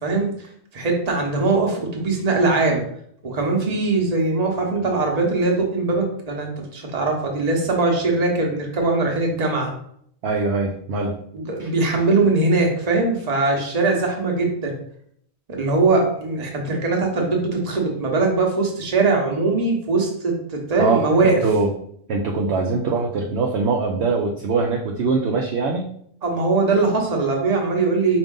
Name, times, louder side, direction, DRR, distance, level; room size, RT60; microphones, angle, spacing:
voice 1, 0.0-2.8 3.2-9.7 11.3-14.8 15.5-21.4 26.2-28.2, right 3 dB, 35° right, 1 dB, 0.9 m, -21 dB
voice 2, 10.2-11.2 11.6-11.7 20.8-21.0 21.4-21.7 22.1-25.9, right 4 dB, 65° right, 0 dB, 0.8 m, -22 dB
5.0 x 2.6 x 3.7 m, 0.67 s
omnidirectional pair, 1.4 m